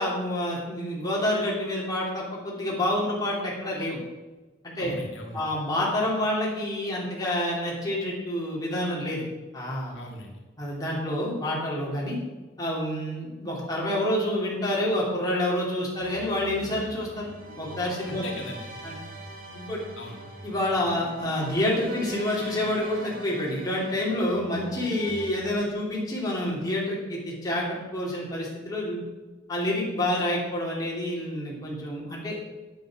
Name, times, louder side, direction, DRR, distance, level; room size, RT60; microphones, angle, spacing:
voice 1, 0.0-4.0 4.6-4.9 5.3-9.3 9.5-10.0 10.6-12.2 12.6-17.3 17.6-18.2 18.8-18.9 19.5-19.8 20.4-29.0 29.5-32.4, left 1 dB, 20° left, -5 dB, 3.2 m, -28 dB
voice 2, 4.8-5.4 9.9-10.3 18.0-18.7 20.0-20.2 20.8-20.9, left 1 dB, 85° left, 0 dB, 2.2 m, -39 dB
sound 1, 16.0-25.4, right 1 dB, 50° right, 2.5 m, -43 dB
9.0 x 8.6 x 6.2 m, 1.2 s
head